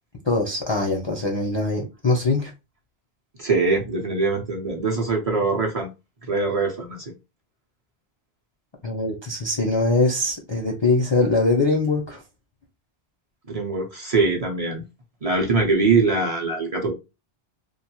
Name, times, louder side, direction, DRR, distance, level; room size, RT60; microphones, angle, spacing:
voice 1, 0.3-2.5 8.8-12.2, left 2 dB, 40° left, 0.4 m, -22 dB
voice 2, 3.4-5.9 6.3-7.0 13.5-14.8 15.2-16.9, right 3 dB, 40° right, 0.6 m, -22 dB
2.6 x 2.3 x 2.9 m
omnidirectional pair, 1.1 m